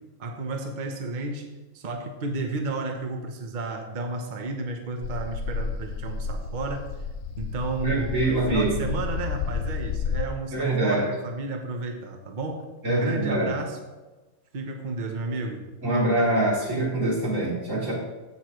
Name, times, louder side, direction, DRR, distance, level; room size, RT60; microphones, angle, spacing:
voice 1, 0.2-6.9 7.4-13.8 14.5-15.7, right 3 dB, 40° right, 4 dB, 1.0 m, -32 dB
sound 1, 5.0-10.2, left 6 dB, 75° left, 0.9 m, -31 dB
voice 2, 7.8-8.8 10.5-11.1 12.8-13.5 15.8-17.9, right 2 dB, 85° right, -6 dB, 3.7 m, -24 dB
15.5 x 6.6 x 3.1 m, 1.2 s
omnidirectional pair, 1.3 m